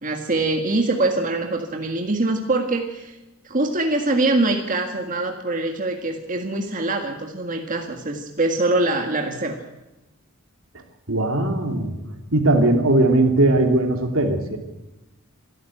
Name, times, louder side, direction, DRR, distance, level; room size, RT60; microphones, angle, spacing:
voice 1, 0.0-3.2 3.4-9.6, right 2 dB, 40° right, 3 dB, 1.8 m, -23 dB
voice 2, 11.1-11.9 12.3-14.6, right 2 dB, 75° right, 4 dB, 3.0 m, -19 dB
26.5 x 12.5 x 9.2 m, 1.0 s
head